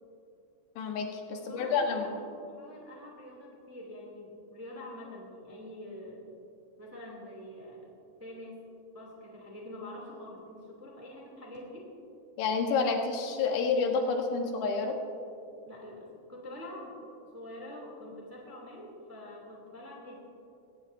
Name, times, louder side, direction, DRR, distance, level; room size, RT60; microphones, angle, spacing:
voice 1, 0.8-2.1 12.4-15.0, left 4 dB, 90° left, 2 dB, 3.5 m, -29 dB
voice 2, 1.3-2.1 2.4-6.2 6.8-7.9 8.2-11.9 15.6-20.2, left 1 dB, 5° right, -2 dB, 1.7 m, -46 dB
20.5 x 17.5 x 2.7 m, 2.6 s
omnidirectional pair, 4.7 m